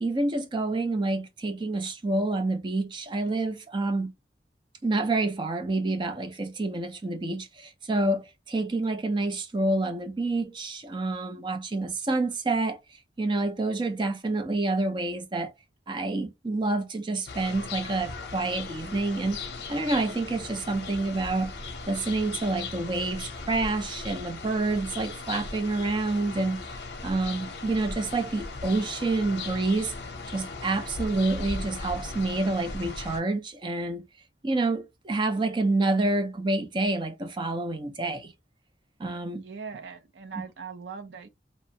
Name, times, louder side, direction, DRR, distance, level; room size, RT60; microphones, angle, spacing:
voice 1, 0.0-4.1 4.8-12.8 13.2-15.5 15.9-19.4 19.7-21.5 21.9-26.6 27.0-29.9 30.3-34.0 34.4-38.3 39.0-39.4, right 2 dB, 25° right, 0.5 m, -28 dB
sound 1, 17.3-33.2, left 3 dB, 65° left, 0.6 m, -38 dB
voice 2, 39.3-41.3, right 6 dB, 80° right, 0.5 m, -40 dB
2.8 x 2.1 x 2.6 m
head